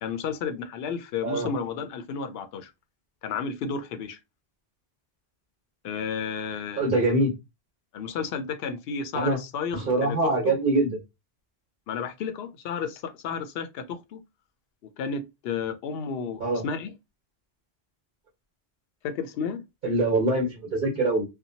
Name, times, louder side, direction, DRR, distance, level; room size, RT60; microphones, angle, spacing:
voice 1, 0.0-2.7 3.2-4.2 5.8-6.8 7.9-10.6 11.9-14.2 15.0-16.9 19.0-19.6, left 6 dB, 70° left, 0.8 m, -32 dB
voice 2, 6.8-7.3 9.1-9.4 9.7-11.0 16.4-16.6 19.8-21.3, right 2 dB, 55° right, 1.1 m, -24 dB
2.8 x 2.2 x 2.7 m
omnidirectional pair, 1.1 m